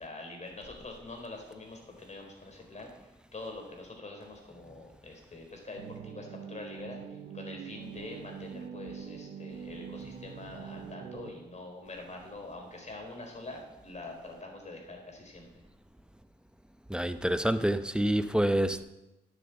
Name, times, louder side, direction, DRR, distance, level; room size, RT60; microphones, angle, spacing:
voice 1, 0.0-15.6, left 2 dB, 40° left, 4.1 m, -45 dB
sound 1, 5.7-11.3, right 7 dB, 80° right, 1.3 m, -44 dB
voice 2, 16.9-18.9, right 1 dB, 5° right, 0.8 m, -27 dB
9.9 x 7.9 x 7.8 m
cardioid pair, 65°, 18 cm